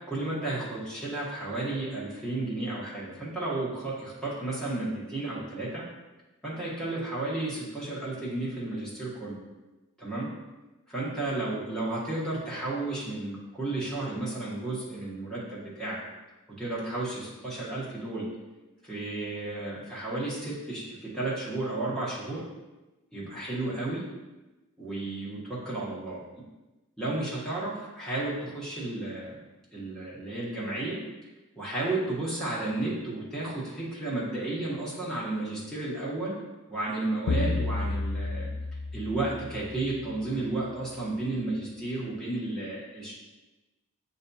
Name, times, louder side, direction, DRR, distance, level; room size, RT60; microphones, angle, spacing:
voice 1, 0.1-5.8 6.4-9.4 10.0-10.3 10.9-16.0 16.5-18.3 18.8-22.5 23.1-24.1 24.8-26.2 27.0-29.4 29.7-31.0 31.6-36.4 36.7-38.5 38.9-43.1, right 2 dB, 5° left, -8 dB, 1.0 m, -33 dB
sound 1, 37.3-40.0, left 2 dB, 70° left, 0.4 m, -31 dB
7.4 x 2.7 x 2.3 m, 1.1 s
head